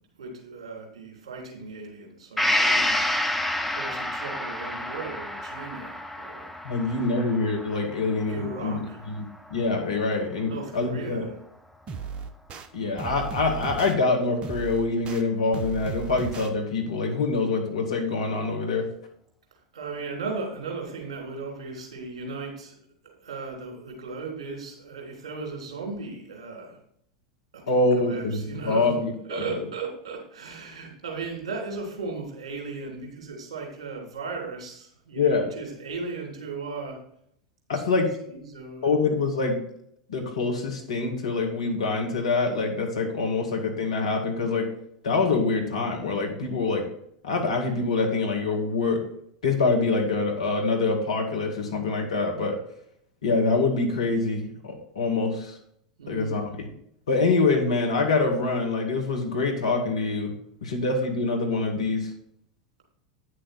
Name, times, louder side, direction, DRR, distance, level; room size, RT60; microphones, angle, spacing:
voice 1, 0.2-3.0 3.7-6.5 6.9-7.0 8.3-9.0 10.5-11.3 19.7-22.8 23.0-26.8 27.5-28.9 29.3-37.0 37.9-38.9 56.0-56.4, right 4 dB, 65° right, 0 dB, 3.4 m, -37 dB
Gong, 2.4-10.0 10.4-10.5, left 1 dB, 5° left, 0.8 m, -29 dB
voice 2, 6.6-8.8 9.1-9.2 9.5-11.3 12.7-18.9 27.7-29.6 35.1-35.5 37.7-38.1 38.8-39.6 40.1-44.7 45.0-46.9 47.2-49.0 49.4-52.6 53.2-55.6 56.1-56.7 57.1-60.3 60.6-62.1, left 3 dB, 70° left, 2 dB, 2.1 m, -25 dB
sound 1, 11.9-12.7 13.0-13.9 14.4-15.2 15.5-16.5, right 5 dB, 30° right, 1.0 m, -35 dB
9.8 x 6.5 x 4.3 m, 0.69 s
figure-of-eight pair, 85°, 3 cm